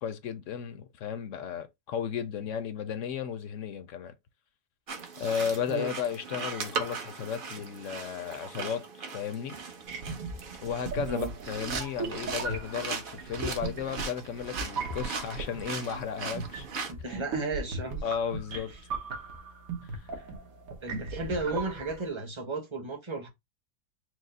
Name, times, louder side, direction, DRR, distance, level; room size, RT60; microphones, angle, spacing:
voice 1, 0.0-4.1 5.2-8.8 9.1-9.6 10.6-16.7 17.1-17.2 18.0-18.7 19.8-19.9, left 7 dB, 65° left, 0.9 m, -34 dB
sound 1, 4.9-16.9, right 5 dB, 50° right, 0.7 m, -39 dB
sound 2, 10.0-22.1, right 3 dB, 75° right, 1.4 m, -38 dB
voice 2, 16.9-18.0 18.5-18.6 20.2-20.3 20.8-23.3, right 3 dB, 25° right, 0.9 m, -34 dB
4.8 x 2.0 x 3.9 m
omnidirectional pair, 1.5 m